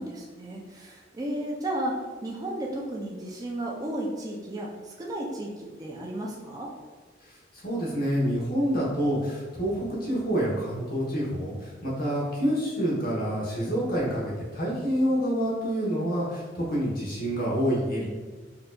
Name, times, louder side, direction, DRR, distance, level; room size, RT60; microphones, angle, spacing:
voice 1, 0.0-1.9 2.2-6.7, right 1 dB, 20° right, -2 dB, 0.4 m, -33 dB
voice 2, 7.6-18.1, equal, 50° left, -5 dB, 1.0 m, -27 dB
4.2 x 2.6 x 2.2 m, 1.4 s
head